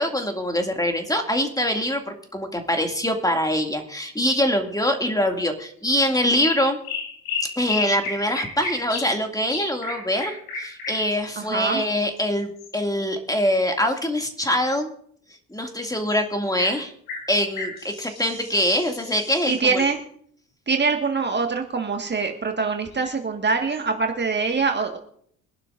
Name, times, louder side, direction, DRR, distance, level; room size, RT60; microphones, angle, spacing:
voice 1, 0.0-2.0 2.3-6.8 7.6-14.9 15.5-16.9 17.3-19.9, left 1 dB, 10° left, 4 dB, 2.3 m, -24 dB
sound 1, 5.9-6.1 6.4-9.2 9.5-12.7 16.1-16.2 16.6-16.8 17.1-20.0 22.9-23.1 23.7-23.8, left 4 dB, 80° left, 4.7 m, -33 dB
voice 2, 11.4-11.8 19.5-20.0 20.7-25.0, right 4 dB, 25° right, 3 dB, 1.7 m, -24 dB
24.0 x 11.5 x 2.6 m, 0.64 s
hypercardioid pair, 55°, 42 cm